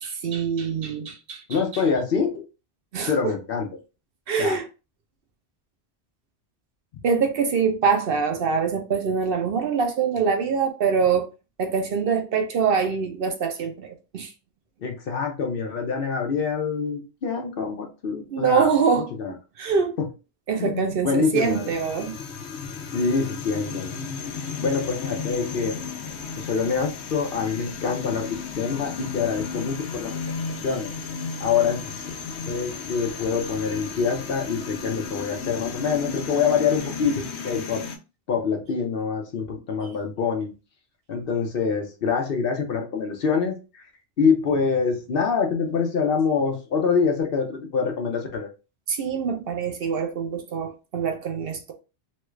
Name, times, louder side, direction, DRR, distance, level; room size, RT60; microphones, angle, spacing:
voice 1, 0.0-1.4 1.7-1.8 2.9-3.3 4.3-4.6 7.0-11.3 11.6-14.3 18.3-19.1 19.6-20.0 20.5-22.1 48.9-51.7, right 6 dB, 60° right, 0.8 m, -24 dB
voice 2, 1.5-2.4 3.1-3.7 4.4-4.6 14.8-18.7 19.2-19.3 20.0-20.1 20.6-21.7 22.9-23.9 24.6-25.8 26.4-30.1 30.6-30.9 31.4-32.0 32.5-37.8 38.3-40.5 41.1-43.8 44.2-48.5, left 5 dB, 60° left, 0.9 m, -25 dB
sound 1, 21.4-38.0, left 5 dB, 85° left, 1.0 m, -34 dB
3.1 x 2.3 x 3.1 m
omnidirectional pair, 1.1 m